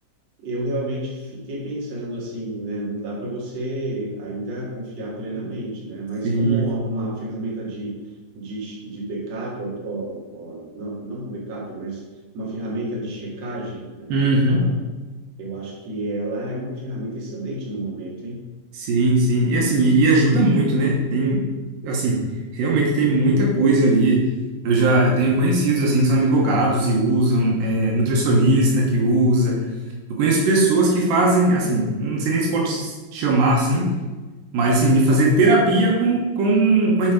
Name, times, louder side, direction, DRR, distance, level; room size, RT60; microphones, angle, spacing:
voice 1, 0.4-8.0 8.3-12.0 12.3-14.7 15.4-18.4, right 1 dB, 55° right, -3 dB, 3.0 m, -30 dB
voice 2, 6.2-6.7 14.1-14.6 18.8-21.4 21.8-22.2 22.5-24.2 24.6-29.7 30.2-33.9 34.5-37.1, right 2 dB, 85° right, -2 dB, 3.0 m, -18 dB
9.6 x 4.6 x 5.3 m, 1.3 s
omnidirectional pair, 3.9 m